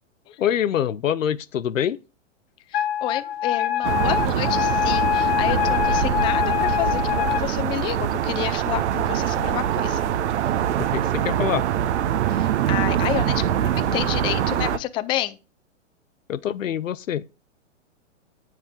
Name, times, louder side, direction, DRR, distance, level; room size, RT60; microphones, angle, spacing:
voice 1, 0.4-2.0 10.8-11.7 16.3-17.2, left 9 dB, 85° left, 0.7 m, -25 dB
Wind instrument woodwind instrument, 2.7-7.5, left 11 dB, 50° left, 1.2 m, -24 dB
voice 2, 2.7-10.0 12.3-15.4, left 13 dB, 15° left, 0.4 m, -30 dB
sound 1, 3.8-14.8, right 10 dB, 60° right, 0.9 m, -24 dB
9.3 x 7.5 x 3.6 m
hypercardioid pair, 125°, 38 cm